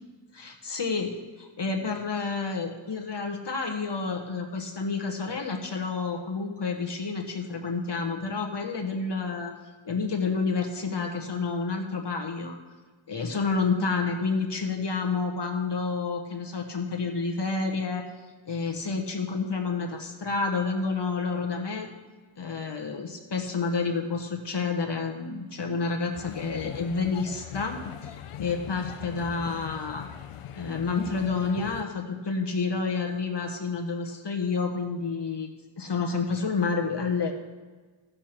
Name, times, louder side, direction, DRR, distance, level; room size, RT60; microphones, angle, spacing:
voice 1, 0.3-9.5 9.8-12.6 13.1-18.1 18.5-21.9 22.4-30.1 30.6-35.5 35.8-37.3, left 4 dB, 55° left, 3 dB, 1.2 m, -29 dB
sound 1, 26.1-31.8, left 9 dB, 90° left, 0.6 m, -40 dB
14.0 x 6.6 x 5.9 m, 1.3 s
wide cardioid pair, 115°, 49 cm